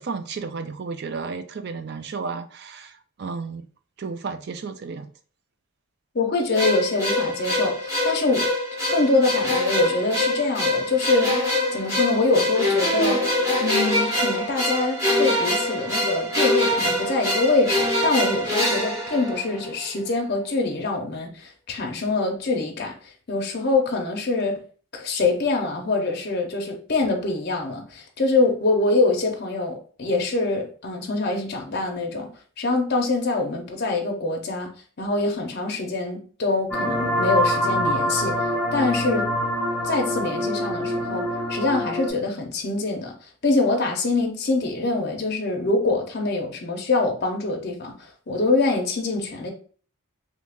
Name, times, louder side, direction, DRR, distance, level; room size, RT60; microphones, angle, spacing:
voice 1, 0.0-3.7 4.0-5.1, right 4 dB, 50° right, 0.3 m, -33 dB
voice 2, 6.1-8.5 8.9-13.3 13.6-24.6 24.9-32.3 32.6-34.7 35.0-38.4 38.7-39.3 39.8-41.2 41.5-43.1 43.4-49.5, left 3 dB, 45° left, 0.6 m, -24 dB
sound 1, 6.5-19.8, left 1 dB, 15° right, 1.2 m, -24 dB
sound 2, 36.7-42.1, equal, 5° left, 0.6 m, -25 dB
3.1 x 2.4 x 3.4 m
head